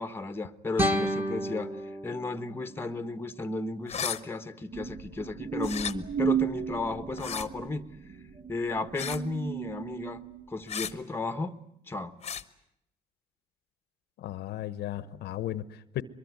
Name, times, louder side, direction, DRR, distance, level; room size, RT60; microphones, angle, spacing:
voice 1, 0.0-1.8 2.0-7.8 8.5-10.2 10.5-11.6 11.9-12.1, left 3 dB, 15° left, 1.2 m, -34 dB
sound 1, 0.8-3.8, equal, 10° right, 1.8 m, -32 dB
sound 2, 3.9-4.2 5.6-5.9 7.2-7.5 9.0-9.3 10.7-10.9 12.2-12.4, left 8 dB, 40° left, 1.1 m, -34 dB
sound 3, 4.7-10.4, right 8 dB, 45° right, 2.3 m, -34 dB
voice 2, 14.2-16.0, left 13 dB, 75° left, 1.1 m, -35 dB
23.0 x 22.5 x 9.5 m
cardioid pair, 110°, 17 cm